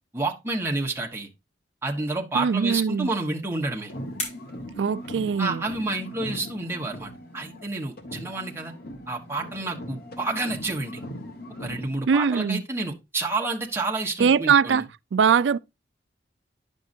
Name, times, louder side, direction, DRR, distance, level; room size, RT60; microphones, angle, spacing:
voice 1, 0.1-1.3 1.8-3.9 5.4-8.7 9.1-11.0 11.6-14.8, right 2 dB, 15° right, 1.3 m, -29 dB
voice 2, 2.3-3.1 4.8-5.6 12.1-12.6 14.2-14.8 15.1-15.6, right 6 dB, 70° right, 0.4 m, -21 dB
sound 1, 3.1-5.8, left 1 dB, 40° left, 5.5 m, -40 dB
sound 2, 3.8-7.7 8.0-12.0, equal, 55° left, 1.7 m, -39 dB
10.5 x 6.3 x 2.7 m
head